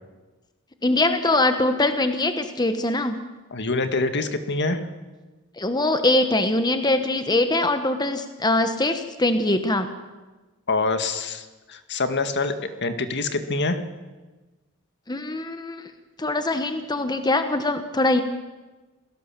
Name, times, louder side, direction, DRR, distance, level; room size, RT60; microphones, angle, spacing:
voice 1, 0.8-3.2 5.6-9.9 15.1-15.8 16.2-18.2, left 2 dB, 20° left, 8 dB, 1.2 m, -22 dB
voice 2, 3.5-4.8 10.7-12.5 12.8-13.8, left 3 dB, 55° left, 9 dB, 1.9 m, -25 dB
28.0 x 17.5 x 7.5 m, 1.2 s
head